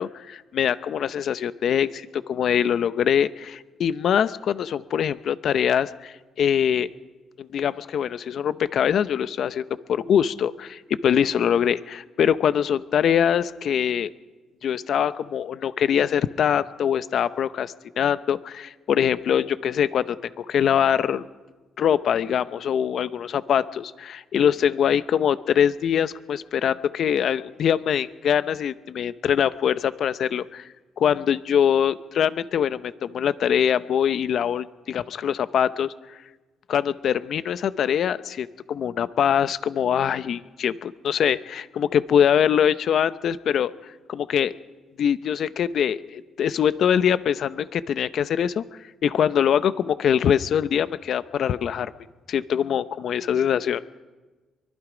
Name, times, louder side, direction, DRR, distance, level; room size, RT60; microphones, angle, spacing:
voice 1, 0.0-6.9 7.4-14.1 14.6-21.3 21.8-30.7 31.0-36.2 36.7-44.5 45.0-48.6 49.0-51.9 52.3-53.8, left 8 dB, 65° left, 14 dB, 0.7 m, -23 dB
24.0 x 21.5 x 5.1 m, 1.3 s
cardioid pair, 90°, 0 cm